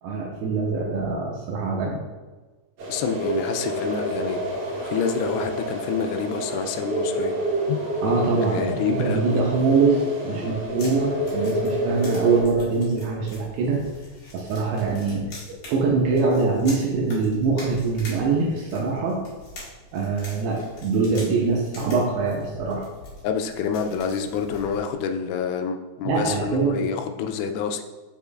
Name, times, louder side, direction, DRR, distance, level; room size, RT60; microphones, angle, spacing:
voice 1, 0.0-2.0 8.0-13.8 14.3-19.2 19.9-22.9 26.0-26.9, right 4 dB, 85° right, -1 dB, 2.6 m, -23 dB
sound 1, 2.8-12.4, right 1 dB, 55° right, 2.4 m, -28 dB
voice 2, 2.9-4.4 4.8-7.3 7.7-7.8 8.5-9.4 23.2-27.8, left 6 dB, 85° left, 6 dB, 2.6 m, -27 dB
sound 2, 10.5-25.0, left 1 dB, 50° left, 2.5 m, -44 dB
6.8 x 6.3 x 2.4 m, 1.3 s
omnidirectional pair, 5.0 m